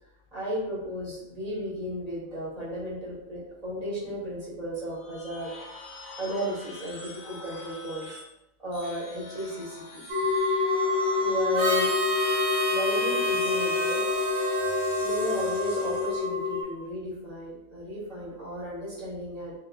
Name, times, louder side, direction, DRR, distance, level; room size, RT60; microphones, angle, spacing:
voice 1, 0.3-5.5 6.2-8.1 8.6-10.0 11.2-11.9 12.7-14.0 15.0-19.5, equal, 30° right, -8 dB, 1.0 m, -34 dB
sound 1, 4.9-8.3 8.7-12.7 13.3-16.1, left 3 dB, 90° left, 1.2 m, -45 dB
sound 2, 10.1-16.6, left 4 dB, 85° right, 1.1 m, -27 dB
Harmonica, 11.5-16.3, right 2 dB, 65° right, 1.2 m, -31 dB
2.5 x 2.3 x 2.5 m, 0.89 s
omnidirectional pair, 1.4 m